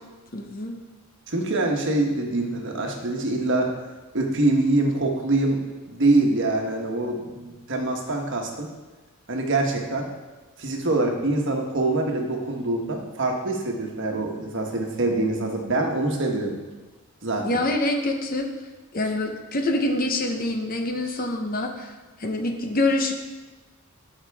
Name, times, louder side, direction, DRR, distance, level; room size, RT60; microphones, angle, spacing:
voice 1, 0.3-0.8 17.4-18.5 18.9-21.9 22.2-23.1, left 2 dB, 40° left, 4 dB, 0.9 m, -25 dB
voice 2, 1.3-3.7 4.1-5.6 5.9-8.7 9.3-10.1 10.6-16.5 17.2-17.6, right 2 dB, 55° right, 2 dB, 1.2 m, -24 dB
13.0 x 5.8 x 3.5 m, 1.3 s
head